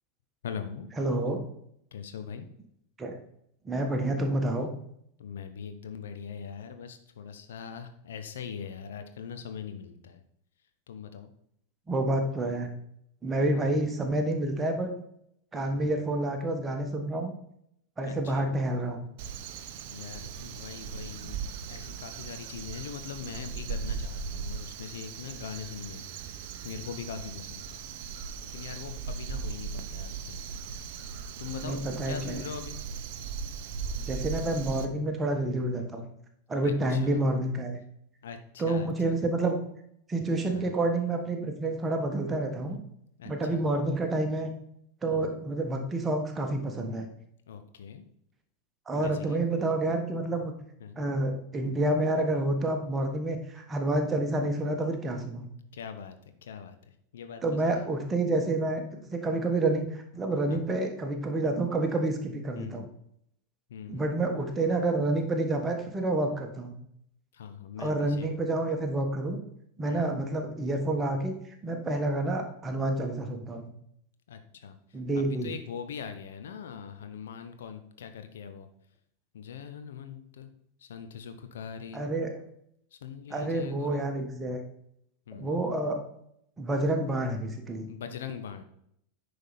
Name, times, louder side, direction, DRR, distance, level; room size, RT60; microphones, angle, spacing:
voice 1, 0.4-0.9 1.9-2.5 5.2-10.2 10.9-11.3 13.5-13.6 15.7-16.0 18.0-18.5 19.9-21.4 21.7-27.8 28.5-30.4 31.4-32.8 36.6-37.2 38.2-39.1 40.5-40.7 43.2-43.6 45.1-45.4 47.5-48.0 49.0-49.4 50.8-51.0 55.7-56.2 56.4-56.8 57.1-57.8 60.5-60.6 62.5-62.8 63.7-64.0 67.3-68.3 69.9-70.2 74.3-74.8 75.1-78.7 79.3-80.5 80.8-82.0 82.9-84.1 85.3-85.6 87.9-88.6, left 7 dB, 60° left, 8 dB, 0.8 m, -41 dB
voice 2, 1.0-1.4 3.0-3.1 3.6-4.7 11.9-12.7 13.2-14.9 15.5-17.3 18.0-19.0 31.6-32.4 34.1-36.1 36.5-37.8 38.6-39.6 40.1-42.8 43.2-44.5 45.0-47.1 48.9-50.5 51.0-55.5 57.4-62.9 63.9-66.7 67.8-69.4 69.8-71.3 71.6-73.7 74.9-75.5 81.9-82.4 83.3-84.6 85.3-86.0 86.6-87.9, right 2 dB, 15° right, 4 dB, 1.4 m, -29 dB
Crow, 19.2-34.9, right 6 dB, 45° right, 0.7 m, -38 dB
9.8 x 5.3 x 4.2 m, 0.72 s
figure-of-eight pair, 90°, 0 cm